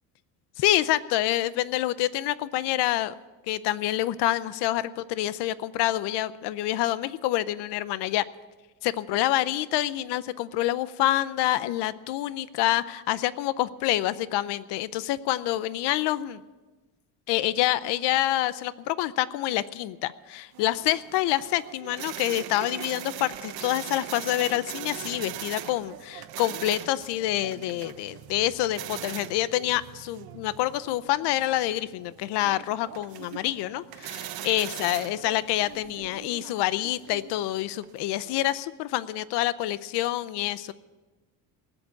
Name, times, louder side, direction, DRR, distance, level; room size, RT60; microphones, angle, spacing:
voice 1, 0.6-3.1 3.5-8.2 8.8-16.4 17.3-40.7, left 14 dB, 80° left, 16 dB, 0.7 m, -27 dB
sound 1, 20.5-38.4, right 12 dB, 65° right, 1.1 m, -41 dB
19.5 x 8.1 x 8.2 m, 1.2 s
cardioid pair, 130°, 40 cm